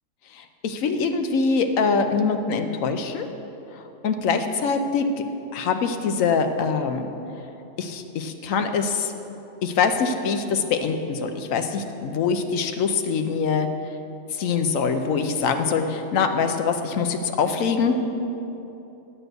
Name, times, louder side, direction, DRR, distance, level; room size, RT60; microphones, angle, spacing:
voice 1, 0.3-3.3 3.7-5.1 5.5-7.1 7.8-9.1 9.6-13.7 14.3-17.9, left 5 dB, 80° left, 7 dB, 1.1 m, -24 dB
10.5 x 4.4 x 7.8 m, 2.9 s
omnidirectional pair, 1.4 m